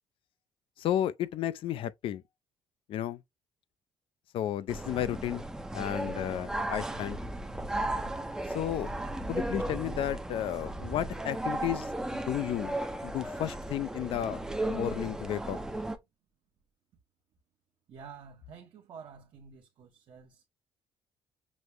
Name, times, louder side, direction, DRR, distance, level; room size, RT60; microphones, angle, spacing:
voice 1, 0.8-2.2 2.9-3.2 4.3-5.4 5.7-7.2 8.5-8.9 9.3-12.7 13.0-14.4 14.7-15.6, left 11 dB, 60° left, 0.4 m, -33 dB
sound 1, 4.7-16.0, right 1 dB, 5° right, 0.5 m, -35 dB
voice 2, 17.9-20.5, right 6 dB, 50° right, 0.9 m, -50 dB
6.0 x 2.0 x 3.2 m
cardioid pair, 135°, 10 cm